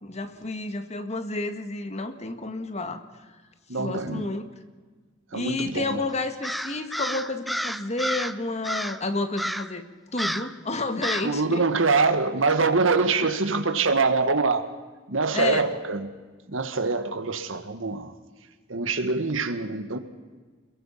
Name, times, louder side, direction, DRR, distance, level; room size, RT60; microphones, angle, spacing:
voice 1, 0.0-3.0 3.8-4.5 5.3-9.8 10.1-11.7 12.5-12.6 15.3-15.7, left 2 dB, 35° left, 1.7 m, -30 dB
voice 2, 3.7-4.3 5.3-6.0 11.2-14.7 15.1-16.1 16.5-18.1 18.7-20.0, right 4 dB, 80° right, 1.8 m, -24 dB
Crow, 6.4-8.4 8.6-9.0 9.4-9.8 10.2-10.5 11.0-11.3, equal, ahead, 0.7 m, -30 dB
27.5 x 22.0 x 5.8 m
head